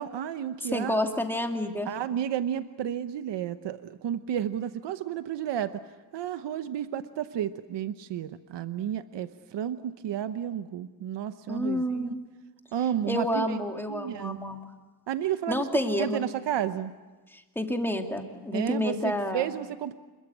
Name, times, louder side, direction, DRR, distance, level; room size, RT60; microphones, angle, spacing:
voice 1, 0.0-1.0 1.8-5.8 6.1-12.2 12.7-13.6 13.9-14.4 15.1-16.9 18.5-19.9, right 10 dB, 85° right, 11 dB, 1.0 m, -32 dB
voice 2, 0.6-1.9 11.5-12.2 13.1-14.7 15.5-16.2 17.3-19.5, left 1 dB, 5° left, 3 dB, 2.5 m, -29 dB
27.5 x 22.0 x 8.6 m, 1.2 s
wide cardioid pair, 130°, 41 cm